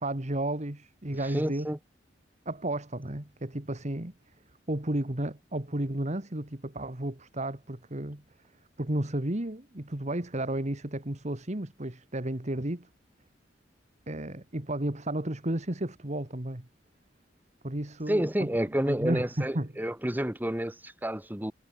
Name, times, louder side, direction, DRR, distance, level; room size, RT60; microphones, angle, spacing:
voice 1, 0.0-1.7 2.5-4.1 4.7-8.2 8.8-12.9 14.1-16.7 17.6-18.5 18.9-19.7, right 1 dB, 40° right, 2.0 m, -32 dB
voice 2, 1.2-1.8 18.1-21.5, right 1 dB, 10° right, 1.5 m, -30 dB
head